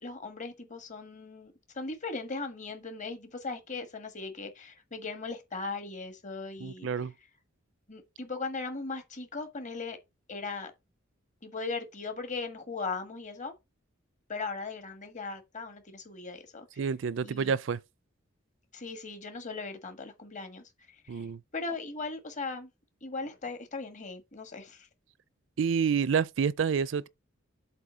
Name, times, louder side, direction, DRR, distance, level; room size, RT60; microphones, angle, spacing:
voice 1, 0.0-6.9 7.9-10.0 10.3-10.7 11.4-13.5 14.3-16.7 17.2-17.5 18.7-21.3 21.5-22.7 23.0-24.9, left 3 dB, 35° left, 1.5 m, -38 dB
voice 2, 6.6-7.1 16.8-17.8 21.1-21.4 25.6-27.1, right 6 dB, 65° right, 0.4 m, -28 dB
7.7 x 3.2 x 6.2 m
head